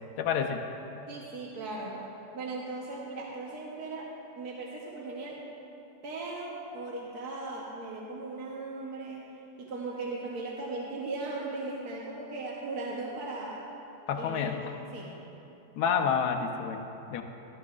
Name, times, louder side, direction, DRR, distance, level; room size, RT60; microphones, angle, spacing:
voice 1, 0.2-0.6 14.1-14.6 15.8-17.2, left 7 dB, 75° left, 4 dB, 1.2 m, -29 dB
voice 2, 1.1-1.9 2.3-4.1 4.4-5.4 6.0-9.2 9.6-13.6 14.2-14.5 14.9-15.1, right 3 dB, 70° right, -4 dB, 1.5 m, -38 dB
14.0 x 13.0 x 2.4 m, 3.0 s
omnidirectional pair, 1.8 m